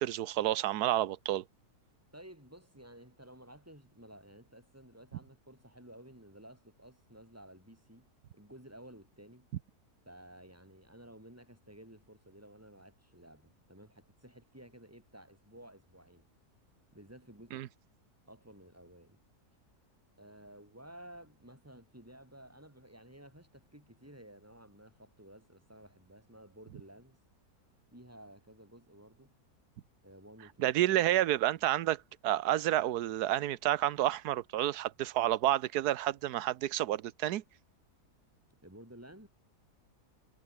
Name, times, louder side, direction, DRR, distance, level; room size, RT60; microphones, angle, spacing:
voice 1, 0.0-1.4 17.5-17.7 30.6-37.4, right 13 dB, 80° right, 1.3 m, -30 dB
voice 2, 2.1-8.1 8.3-9.5 10.1-16.3 16.9-17.7 18.3-19.2 20.2-27.2 27.9-29.3 30.0-30.7 38.6-39.3, right 1 dB, 10° right, 6.2 m, -54 dB
omnidirectional pair, 1.7 m